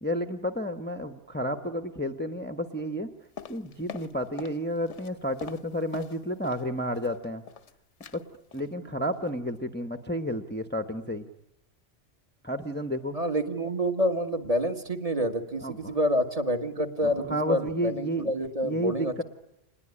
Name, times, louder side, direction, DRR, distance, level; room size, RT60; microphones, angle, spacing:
voice 1, 0.0-3.1 3.5-7.4 8.1-8.2 8.5-11.3 12.4-13.1 15.6-16.0 17.0-18.3 18.6-19.2, equal, 10° left, 6 dB, 1.0 m, -31 dB
sound 1, 3.4-4.6 4.9-6.7 6.9-7.7 8.0-8.2 8.5-8.7 9.0-9.3 9.6-9.7, left 7 dB, 75° left, 1.5 m, -43 dB
voice 2, 13.1-19.2, equal, 30° right, 5 dB, 1.8 m, -28 dB
27.0 x 20.5 x 9.9 m, 0.93 s
omnidirectional pair, 1.2 m